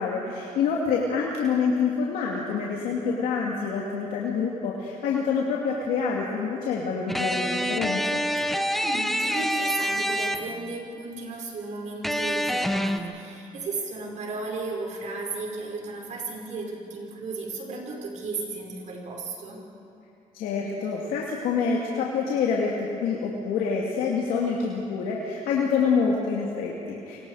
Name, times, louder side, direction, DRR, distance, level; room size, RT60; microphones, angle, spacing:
voice 1, 0.0-8.2 20.3-27.2, left 5 dB, 85° left, -3 dB, 2.5 m, -26 dB
sound 1, 7.1-10.8 12.0-13.0, equal, ahead, 1.1 m, -27 dB
voice 2, 8.8-19.6, right 3 dB, 55° right, -1 dB, 5.4 m, -34 dB
27.5 x 25.0 x 5.0 m, 2.8 s
cardioid pair, 100°, 14 cm